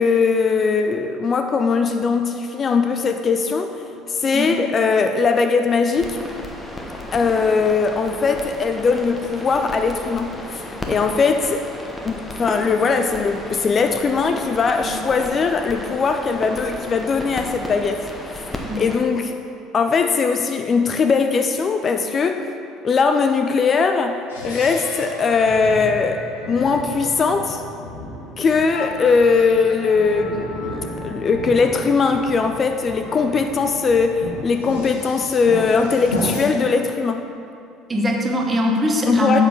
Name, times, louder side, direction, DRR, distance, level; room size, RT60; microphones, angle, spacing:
voice 1, 0.0-6.2 7.1-11.7 12.0-18.5 18.8-19.4 19.7-22.5 22.8-26.2 26.5-27.6 28.4-37.2 39.1-39.4, left 5 dB, 35° left, 6 dB, 0.4 m, -20 dB
sound 1, 6.0-19.0, left 1 dB, 10° left, 1.1 m, -33 dB
sound 2, 24.3-36.4, left 1 dB, 80° left, 1.2 m, -32 dB
voice 2, 37.9-39.4, equal, 25° right, 1 dB, 1.2 m, -21 dB
7.9 x 6.9 x 3.8 m, 2.5 s
figure-of-eight pair, 60°, 0 cm